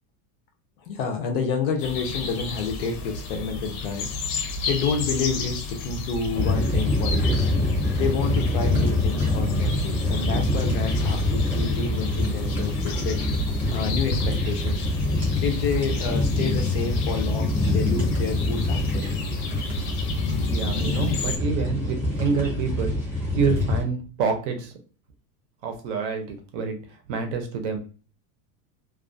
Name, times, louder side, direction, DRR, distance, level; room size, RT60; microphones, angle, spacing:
voice 1, 0.8-4.1 4.7-7.5 8.0-13.2 13.7-14.8 15.4-19.1, left 5 dB, 45° left, 3 dB, 0.4 m, -29 dB
sound 1, 1.8-21.4, left 3 dB, 80° left, 0.7 m, -32 dB
sound 2, 6.3-23.8, left 2 dB, 5° right, 0.7 m, -25 dB
voice 2, 20.5-24.7 25.6-26.8 27.1-27.8, right 5 dB, 55° right, 5 dB, 0.6 m, -27 dB
2.3 x 2.3 x 2.4 m, 0.37 s
supercardioid pair, 175°, 43 cm